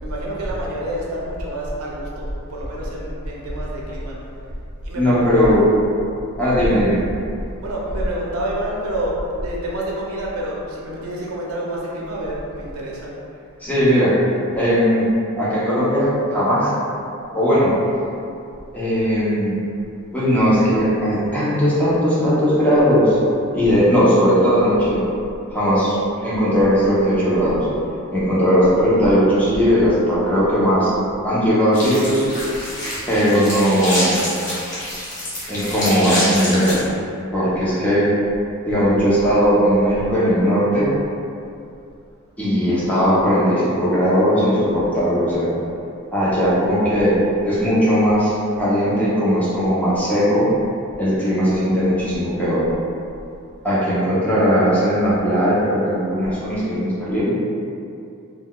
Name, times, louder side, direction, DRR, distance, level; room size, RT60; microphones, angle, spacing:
voice 1, 0.0-4.2 4.8-5.6 6.5-6.8 7.6-13.1, right 1 dB, 75° right, -4 dB, 0.6 m, -27 dB
voice 2, 4.9-5.6 6.4-7.0 13.6-14.1 14.5-15.0 15.4-16.7 17.3-17.7 18.7-19.5 20.1-23.2 23.5-25.0 25.5-27.7 28.1-30.9 31.2-32.2 33.1-34.2 35.5-36.8 37.3-38.1 38.6-40.9 42.4-45.6 46.1-47.1 47.4-50.5 51.0-52.6 53.6-57.3, equal, 5° left, -10 dB, 0.7 m, -18 dB
sound 1, 31.7-36.8, left 1 dB, 35° left, 0.9 m, -27 dB
3.8 x 2.2 x 2.2 m, 2.5 s
head